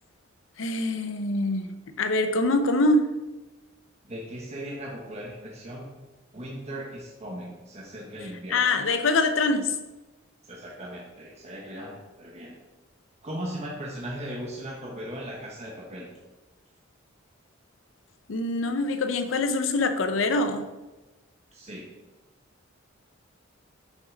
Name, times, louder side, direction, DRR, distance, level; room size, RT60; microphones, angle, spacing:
voice 1, 0.6-1.7 2.0-3.2 8.5-9.7 18.3-20.7, left 2 dB, 75° left, 8 dB, 0.6 m, -24 dB
voice 2, 4.0-5.9 6.3-8.8 10.4-12.6 13.2-16.1 21.5-21.9, equal, 35° right, -2 dB, 1.2 m, -38 dB
6.6 x 6.0 x 5.1 m, 1.1 s
head